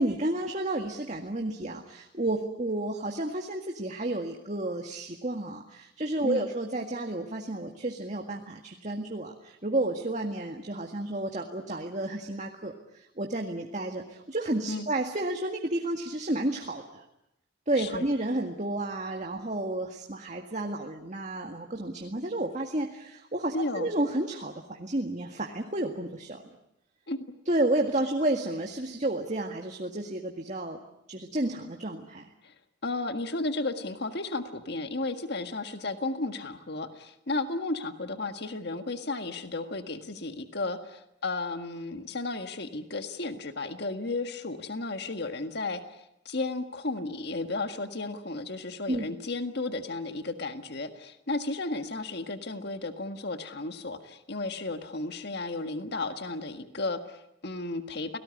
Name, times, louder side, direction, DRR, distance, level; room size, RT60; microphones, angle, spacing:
voice 1, 0.0-17.1 17.7-26.5 27.5-30.8 31.1-32.3 48.9-49.1, right 1 dB, 35° right, 2 dB, 1.9 m, -31 dB
voice 2, 23.5-23.9 27.1-27.2 32.4-32.5 32.8-58.2, left 2 dB, 55° left, 8 dB, 1.7 m, -34 dB
29.5 x 18.5 x 9.9 m, 0.83 s
head